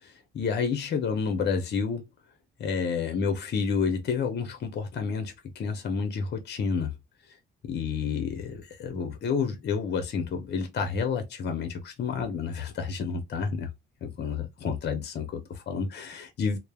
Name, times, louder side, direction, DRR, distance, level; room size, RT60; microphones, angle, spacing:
voice 1, 0.0-2.1 2.6-6.9 7.6-13.7 14.0-16.6, left 5 dB, 60° left, 0.8 m, -30 dB
3.0 x 2.0 x 2.3 m
cardioid pair, 90°, 20 cm